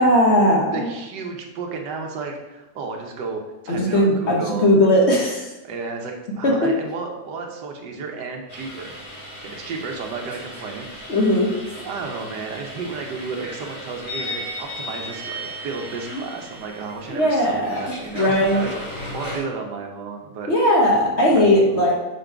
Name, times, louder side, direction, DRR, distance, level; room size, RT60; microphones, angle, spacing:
voice 1, 0.0-0.9 3.7-5.5 6.4-6.7 11.1-11.5 16.1-16.2 17.1-18.7 20.5-21.9, left 1 dB, 45° left, -2 dB, 1.1 m, -18 dB
voice 2, 0.7-4.9 5.6-8.9 9.4-11.2 11.8-18.7 19.1-20.5 21.3-21.8, right 4 dB, 80° right, 2 dB, 1.5 m, -33 dB
sound 1, 8.5-19.4, equal, 65° left, 2.8 m, -36 dB
6.2 x 3.9 x 4.5 m, 1.0 s
omnidirectional pair, 1.9 m